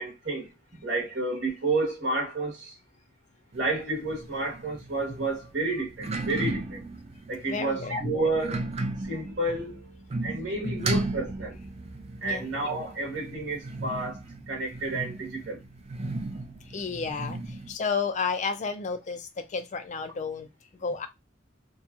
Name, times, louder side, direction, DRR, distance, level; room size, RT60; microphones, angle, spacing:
voice 1, 0.0-2.8 3.5-6.8 7.3-8.7 9.0-11.5 12.2-15.6, right 2 dB, 65° right, 1.1 m, -31 dB
sound 1, 3.5-17.7, right 2 dB, 35° right, 0.4 m, -35 dB
voice 2, 7.5-8.0 10.6-11.1 12.2-12.5 16.6-20.5 20.8-21.1, left 5 dB, 40° left, 0.4 m, -32 dB
2.8 x 2.4 x 2.4 m
head